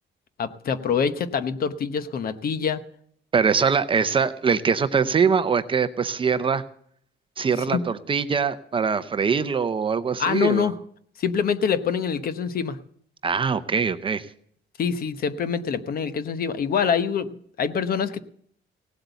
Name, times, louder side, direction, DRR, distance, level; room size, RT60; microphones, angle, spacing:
voice 1, 0.4-2.8 7.7-7.8 10.2-10.7 11.2-12.8 14.8-18.2, left 7 dB, 50° left, 13 dB, 0.9 m, -25 dB
voice 2, 3.3-6.6 7.4-10.7 13.2-14.3, right 6 dB, 25° right, 12 dB, 0.7 m, -23 dB
17.5 x 8.0 x 8.1 m, 0.64 s
cardioid pair, 170°, 20 cm